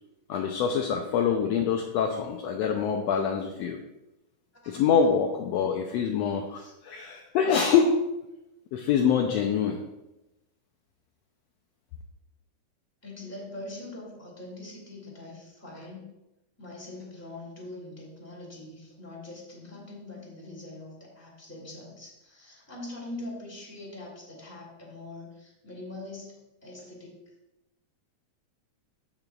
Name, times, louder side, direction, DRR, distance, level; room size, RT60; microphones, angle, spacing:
voice 1, 0.3-3.8 4.7-8.1 8.7-9.8, left 6 dB, 80° left, 3 dB, 1.6 m, -25 dB
voice 2, 13.0-16.1 16.6-27.2, left 2 dB, 5° left, -4 dB, 2.1 m, -43 dB
14.5 x 5.7 x 2.4 m, 0.94 s
omnidirectional pair, 3.4 m